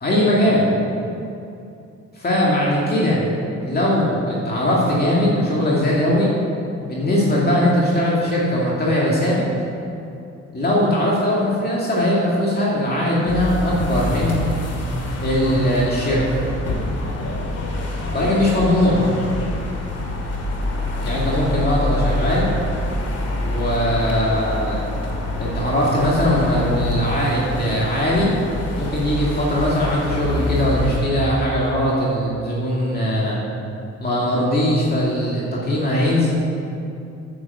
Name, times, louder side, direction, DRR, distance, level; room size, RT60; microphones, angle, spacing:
voice 1, 0.0-0.7 2.1-3.3 3.6-6.4 6.8-9.4 10.5-14.4 15.2-16.4 18.1-19.1 21.0-22.5 23.4-24.8 25.4-28.3 28.7-33.4 34.0-36.3, left 1 dB, 30° left, -6 dB, 2.5 m, -20 dB
sound 1, 13.3-31.0, left 1 dB, 55° left, 2.2 m, -26 dB
9.2 x 8.6 x 6.5 m, 2.7 s
cardioid pair, 90°, 30 cm